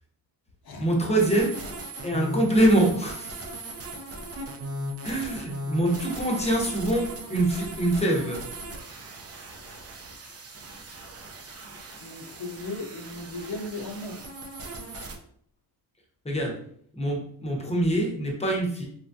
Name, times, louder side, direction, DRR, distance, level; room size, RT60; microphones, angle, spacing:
voice 1, 0.8-1.5 2.0-3.4 5.0-8.4 16.2-16.6 16.9-18.8, right 1 dB, 15° left, -1 dB, 0.8 m, -24 dB
sound 1, 1.2-15.2, right 1 dB, 35° right, 0.5 m, -38 dB
voice 2, 12.0-14.3, left 2 dB, 55° left, 1 dB, 0.7 m, -36 dB
3.2 x 2.3 x 2.6 m, 0.64 s
cardioid pair, 95°, 44 cm